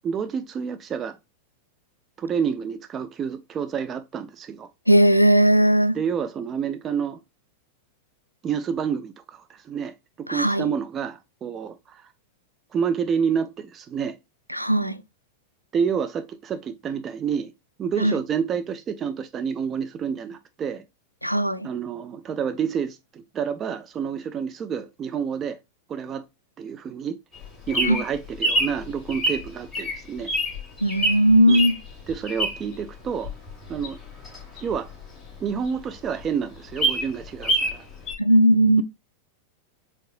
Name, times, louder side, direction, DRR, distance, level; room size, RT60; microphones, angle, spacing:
voice 1, 0.0-1.2 2.2-4.7 5.9-7.2 8.4-12.1 12.7-14.2 15.7-17.5 17.8-20.8 21.6-25.6 25.9-26.2 26.6-27.2 27.7-30.3 31.5-31.6 32.1-33.3 33.7-34.0 34.6-34.9 35.4-37.9, right 7 dB, 25° right, 0.4 m, -29 dB
voice 2, 4.9-6.0 10.3-10.7 14.5-15.0 18.0-18.1 21.2-21.7 27.8-28.0 30.8-31.7 38.2-38.8, right 1 dB, 90° left, 0.3 m, -18 dB
Bird vocalization bird call bird song, 27.3-32.8 33.2-35.4 35.8-35.9 36.1-36.2 36.5-37.8 38.1-38.2, right 1 dB, 15° left, 1.7 m, -26 dB
4.6 x 3.6 x 2.3 m
figure-of-eight pair, 90°, 0 cm